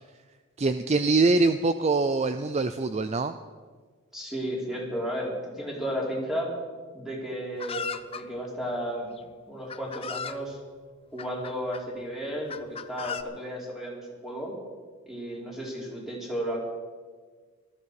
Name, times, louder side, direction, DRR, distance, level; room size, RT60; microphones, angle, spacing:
voice 1, 0.6-3.3, right 3 dB, 30° right, 10 dB, 0.4 m, -24 dB
voice 2, 4.1-6.5 6.9-9.1 9.5-10.6 11.1-14.5 15.1-16.6, equal, ahead, -4 dB, 3.9 m, -33 dB
Chicken rooster, 7.6-8.2 9.2-9.3 9.7-10.4 11.2-11.8 12.5-13.2, left 6 dB, 25° left, 0.6 m, -36 dB
18.5 x 14.0 x 4.8 m, 1.5 s
head